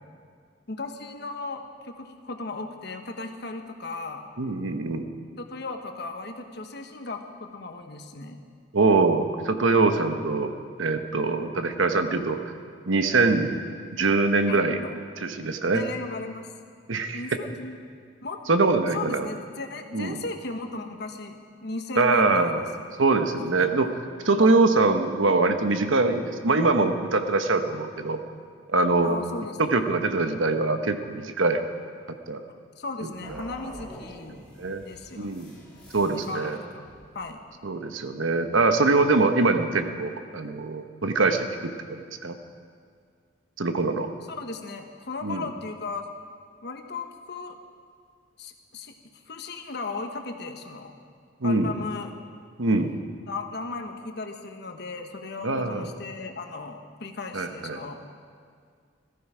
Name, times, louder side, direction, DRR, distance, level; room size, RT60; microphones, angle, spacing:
voice 1, 0.7-4.3 5.4-8.4 14.5-14.9 15.7-16.5 17.1-17.8 18.2-18.4 18.9-22.6 23.4-23.8 24.4-24.6 29.0-29.6 32.8-34.4 34.8-35.3 36.2-36.8 37.1-37.4 44.3-46.1 46.6-47.6 48.4-48.9 49.3-50.9 51.4-52.1 53.3-58.0, left 3 dB, 55° left, 5 dB, 1.2 m, -36 dB
voice 2, 4.4-5.1 8.7-10.5 10.8-12.4 12.9-13.5 13.9-14.8 15.2-15.8 16.9-17.2 18.5-19.3 19.9-20.2 22.0-22.6 23.0-23.9 24.2-28.2 28.7-29.2 29.6-31.6 32.3-32.4 33.0-33.4 34.6-34.8 35.2-35.5 35.9-36.6 37.6-42.4 43.6-44.1 45.2-45.5 51.4-51.7 52.6-52.9 55.4-55.9 57.3-57.8, right 3 dB, 80° right, 7 dB, 1.0 m, -23 dB
sound 1, 33.2-37.3, equal, 5° left, 3.8 m, -46 dB
17.0 x 14.0 x 4.9 m, 2.1 s
head